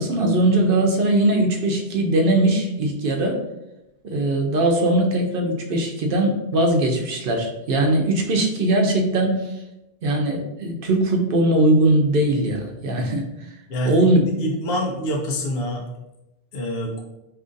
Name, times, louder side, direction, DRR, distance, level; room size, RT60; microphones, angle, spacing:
voice 1, 0.0-3.4 4.0-9.5 10.0-13.3 13.8-14.2, right 1 dB, 65° right, 3 dB, 0.7 m, -20 dB
voice 2, 13.7-15.8 16.5-16.9, equal, 80° left, 0 dB, 0.9 m, -26 dB
2.8 x 2.5 x 3.7 m, 0.94 s
omnidirectional pair, 1.0 m